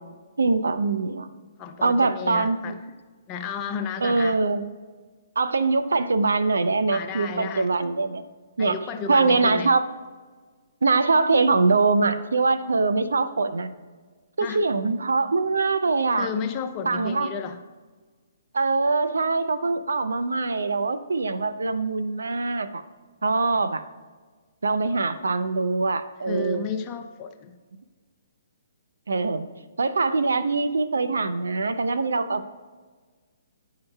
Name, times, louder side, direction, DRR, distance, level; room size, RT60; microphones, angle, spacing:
voice 1, 0.4-1.3 1.8-2.7 4.0-4.6 5.4-8.3 8.6-8.7 9.1-9.9 10.8-13.7 14.4-16.3 16.9-17.3 18.5-22.8 23.2-23.8 24.6-26.7 29.1-29.5 29.8-32.5, right 3 dB, 80° right, 12 dB, 0.4 m, -23 dB
voice 2, 1.6-2.7 3.3-4.4 6.9-7.7 8.6-9.7 14.4-14.6 16.2-17.6 26.3-27.5, left 6 dB, 25° left, 6 dB, 0.6 m, -33 dB
9.5 x 5.6 x 2.3 m, 1.4 s
hypercardioid pair, 140°, 0 cm